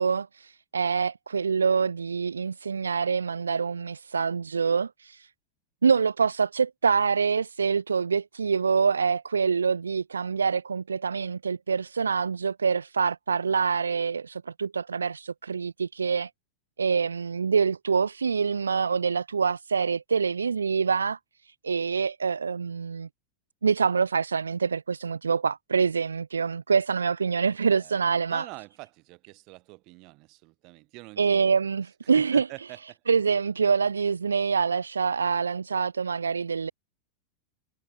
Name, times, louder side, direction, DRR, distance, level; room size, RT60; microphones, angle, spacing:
voice 1, 0.0-5.3 5.8-16.3 16.8-21.2 21.6-23.1 23.6-28.5 31.2-32.5 33.1-36.7, right 5 dB, 75° right, 0.6 m, -25 dB
voice 2, 28.3-31.5 32.0-33.0, right 25 dB, 40° right, 5.9 m, -45 dB
figure-of-eight pair, 90°, 0 cm